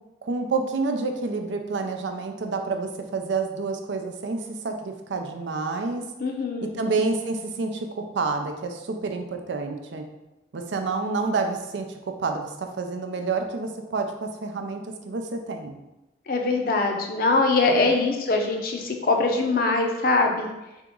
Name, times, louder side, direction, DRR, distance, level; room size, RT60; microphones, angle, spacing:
voice 1, 0.2-6.0 6.7-10.0 10.5-15.8 17.7-17.9, right 4 dB, 85° right, 5 dB, 0.5 m, -29 dB
voice 2, 6.2-6.8 16.3-20.5, left 3 dB, 50° left, 3 dB, 0.5 m, -22 dB
3.6 x 2.9 x 3.7 m, 0.98 s
head